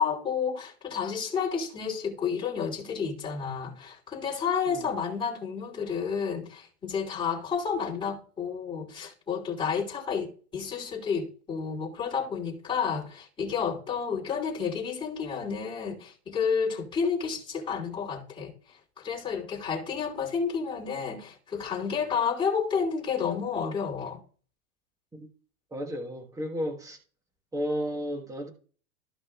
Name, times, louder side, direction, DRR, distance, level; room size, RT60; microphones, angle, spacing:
voice 1, 0.0-18.5 19.0-24.2, left 6 dB, 10° left, 3.0 m, -30 dB
voice 2, 25.7-27.0 27.5-28.5, equal, 5° right, 1.2 m, -33 dB
14.0 x 6.0 x 2.4 m
supercardioid pair, 155°, 44 cm